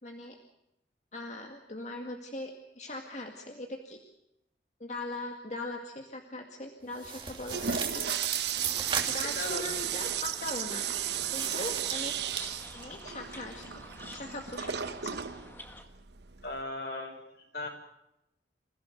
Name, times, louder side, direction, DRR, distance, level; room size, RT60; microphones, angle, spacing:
voice 1, 0.0-0.4 1.1-4.0 4.8-8.0 9.1-10.9 11.3-12.1 12.7-13.7 14.1-15.2, left 2 dB, 40° left, 3 dB, 2.1 m, -40 dB
sound 1, 6.9-9.6 11.3-12.4, right 7 dB, 30° right, 2.9 m, -35 dB
Toilet flush, 7.2-16.6, right 9 dB, 75° right, 1.1 m, -35 dB
sound 2, 8.5-15.8, left 1 dB, 10° left, 2.0 m, -49 dB
voice 2, 9.3-9.7 16.4-17.7, left 2 dB, 65° left, 3 dB, 6.5 m, -37 dB
27.5 x 16.0 x 7.8 m, 0.84 s
head